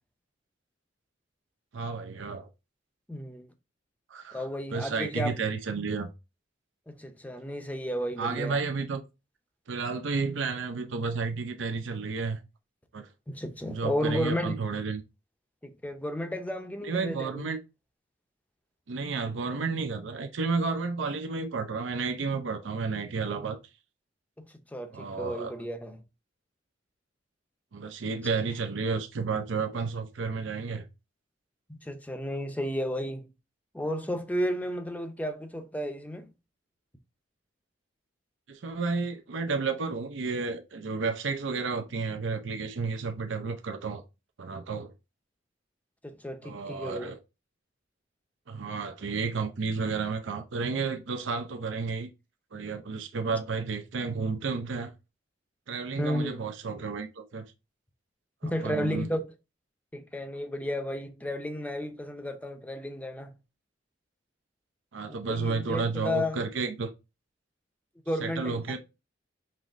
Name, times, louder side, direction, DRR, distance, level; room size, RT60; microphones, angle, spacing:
voice 1, 1.7-2.5 4.1-4.4 4.7-6.1 8.2-9.0 9.7-12.4 12.9-13.1 13.7-15.0 16.8-17.6 18.9-23.6 24.9-25.5 27.7-30.8 38.5-44.0 44.4-44.9 46.4-47.2 48.5-52.1 52.5-54.9 55.7-57.5 58.6-59.1 64.9-66.9 68.2-68.8, right 4 dB, 80° right, 0.5 m, -31 dB
voice 2, 3.1-3.5 4.3-5.4 6.9-8.6 13.3-14.6 15.6-17.5 24.4-26.0 31.7-33.3 33.7-36.3 46.0-47.1 56.0-56.4 58.4-59.3 59.9-63.3 65.1-66.4 68.1-68.8, equal, 10° left, 0.5 m, -33 dB
5.4 x 3.1 x 2.5 m
head